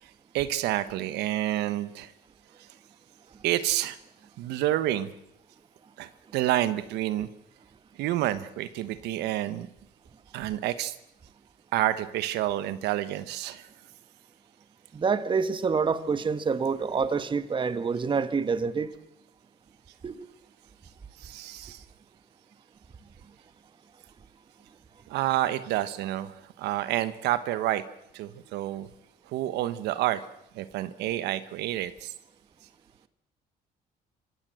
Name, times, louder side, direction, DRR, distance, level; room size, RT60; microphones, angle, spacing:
voice 1, 0.3-2.1 3.4-4.0 4.4-5.1 6.0-7.3 8.0-9.7 10.3-10.9 11.7-13.7 21.2-21.8 25.1-27.8 28.1-28.9 29.3-30.2 30.5-32.1, right 14 dB, 85° right, 14 dB, 1.1 m, -29 dB
voice 2, 14.9-18.9 20.0-20.3, right 5 dB, 30° right, 12 dB, 1.4 m, -27 dB
26.0 x 16.0 x 7.8 m, 0.82 s
cardioid pair, 110°, 17 cm